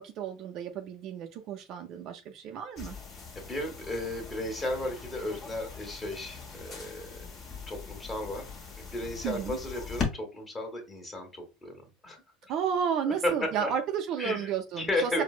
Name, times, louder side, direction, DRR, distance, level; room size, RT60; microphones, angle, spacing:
voice 1, 0.0-3.0 9.2-9.6 12.5-15.2, right 8 dB, 55° right, 4 dB, 0.4 m, -32 dB
sound 1, 2.8-10.1, left 5 dB, 40° left, 1.2 m, -40 dB
voice 2, 3.3-7.2 7.7-8.5 8.9-11.8 12.0-12.2 13.0-13.7 14.2-14.5 14.8-15.2, left 1 dB, 20° left, 2 dB, 1.3 m, -34 dB
4.3 x 2.0 x 2.4 m, 0.29 s
supercardioid pair, 115°, 0 cm